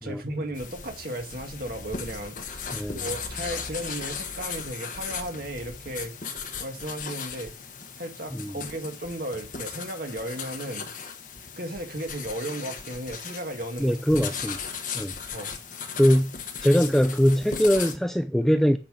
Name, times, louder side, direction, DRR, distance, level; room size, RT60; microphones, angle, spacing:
voice 1, 0.0-6.3 6.6-7.5 7.9-10.9 11.5-14.0 15.3-15.6, right 1 dB, 50° right, 2.0 m, -35 dB
sound 1, 0.6-18.0, left 6 dB, 45° left, 1.3 m, -37 dB
voice 2, 13.8-14.6 14.9-15.1 16.0-16.3 16.6-18.8, equal, ahead, 0.4 m, -22 dB
8.7 x 5.9 x 6.4 m
head